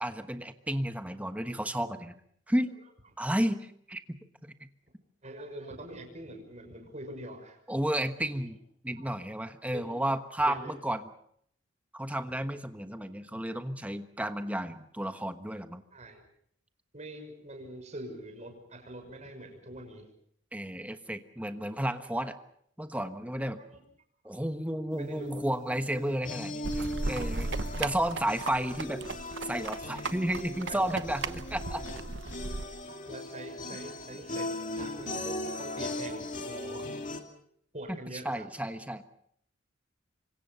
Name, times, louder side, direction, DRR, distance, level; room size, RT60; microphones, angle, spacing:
voice 1, 0.0-2.2 2.5-2.7 3.2-4.2 4.6-4.7 7.7-8.6 8.8-11.0 11.9-15.8 20.5-22.4 22.8-23.6 24.2-27.5 27.8-29.0 29.4-31.8 38.2-39.0, right 1 dB, 5° right, 8 dB, 1.3 m, -32 dB
voice 2, 5.2-7.6 8.3-8.4 9.0-9.1 9.7-9.9 10.4-10.7 15.9-16.2 16.9-20.1 23.6-23.8 25.0-25.3 25.9-26.2 30.7-31.0 32.8-36.9 37.7-38.5, right 1 dB, 35° right, 4 dB, 6.3 m, -44 dB
sound 1, 24.9-37.2, left 1 dB, 40° left, 2.7 m, -39 dB
sound 2, 26.6-32.6, right 3 dB, 65° right, 1.0 m, -36 dB
27.5 x 25.0 x 5.7 m, 0.68 s
head